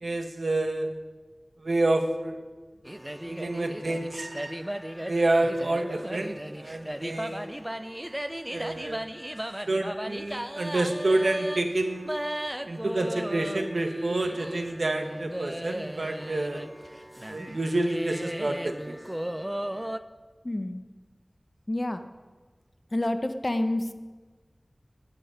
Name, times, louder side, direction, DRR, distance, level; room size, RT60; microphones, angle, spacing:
voice 1, 0.0-0.9 1.6-2.4 3.3-4.6 5.1-7.5 8.5-9.0 9.7-12.1 12.7-16.6 17.3-18.9, right 2 dB, 90° right, 5 dB, 1.2 m, -28 dB
sound 1, 2.9-20.0, right 1 dB, 15° right, 0.6 m, -36 dB
voice 2, 20.4-20.8 21.7-22.0 22.9-23.9, left 1 dB, 45° left, 7 dB, 1.0 m, -28 dB
10.0 x 8.1 x 9.6 m, 1.3 s
wide cardioid pair, 45°, 0 cm